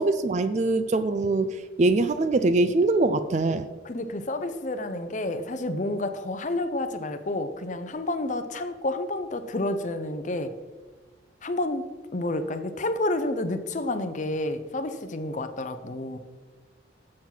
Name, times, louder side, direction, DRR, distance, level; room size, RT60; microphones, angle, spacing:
voice 1, 0.0-3.7, right 2 dB, 35° right, 11 dB, 0.4 m, -23 dB
voice 2, 3.8-10.5 11.4-11.8 12.1-16.2, left 2 dB, 40° left, 9 dB, 0.6 m, -30 dB
7.4 x 7.0 x 5.8 m, 1.3 s
head